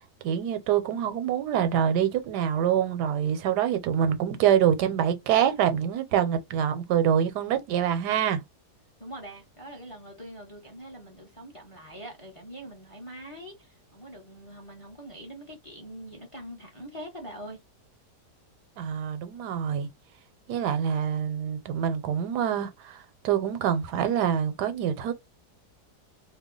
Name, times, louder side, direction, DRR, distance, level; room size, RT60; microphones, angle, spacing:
voice 1, 0.2-8.4 18.8-19.9 20.5-25.1, right 9 dB, 85° right, 1.2 m, -25 dB
voice 2, 9.0-17.6, right 1 dB, 30° left, 0.6 m, -43 dB
2.8 x 2.2 x 3.7 m
omnidirectional pair, 1.7 m